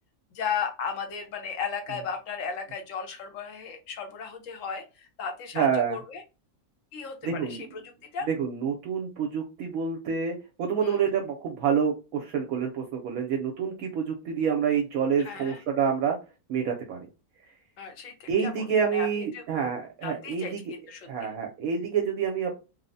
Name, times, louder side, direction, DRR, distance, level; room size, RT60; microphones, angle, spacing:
voice 1, 0.3-6.2 6.9-8.3 10.8-11.0 15.2-15.6 17.8-18.6 18.9-19.4 20.0-21.3, left 6 dB, 65° left, 5 dB, 1.1 m, -35 dB
voice 2, 5.5-6.0 7.2-7.6 8.3-16.2 16.5-17.0 18.3-20.6 21.1-22.6, right 7 dB, 70° right, 1 dB, 1.0 m, -27 dB
3.2 x 2.0 x 2.5 m, 0.30 s
omnidirectional pair, 1.6 m